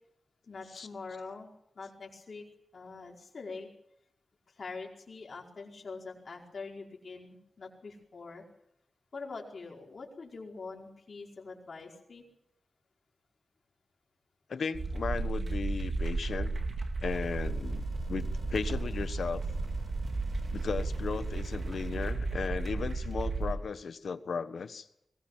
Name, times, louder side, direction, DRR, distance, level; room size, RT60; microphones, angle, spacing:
voice 1, 0.5-1.5 1.7-2.4 2.7-3.7 4.6-8.4 9.1-12.2, left 4 dB, 55° left, 0 dB, 5.0 m, -44 dB
voice 2, 14.5-16.5 17.0-19.4 20.5-24.9, left 5 dB, 80° left, 12 dB, 1.3 m, -36 dB
sound 1, 14.7-23.5, right 3 dB, 60° right, 3.8 m, -34 dB
sound 2, 17.1-22.1, right 1 dB, 40° right, 6.5 m, -48 dB
21.5 x 20.0 x 7.6 m, 0.76 s
wide cardioid pair, 145°, 0 cm